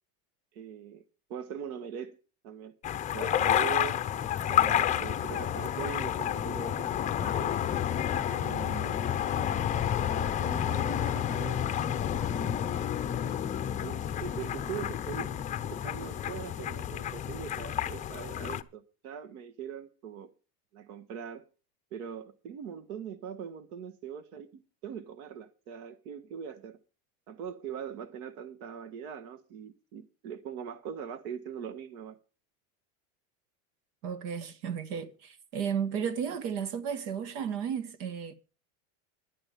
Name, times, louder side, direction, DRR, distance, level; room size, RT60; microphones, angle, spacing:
voice 1, 0.5-1.0 1.3-2.2 2.4-2.7 3.1-4.0 4.4-7.6 8.3-9.2 10.0-11.7 12.6-13.0 13.8-15.3 15.7-20.3 20.7-21.4 21.9-26.8 27.3-32.2, right 8 dB, 70° right, 1.5 m, -41 dB
sound 1, 2.8-18.6, left 10 dB, 15° left, 0.5 m, -30 dB
voice 2, 34.0-38.3, right 7 dB, 90° right, 1.7 m, -33 dB
11.5 x 11.0 x 5.2 m
supercardioid pair, 150°, 45 cm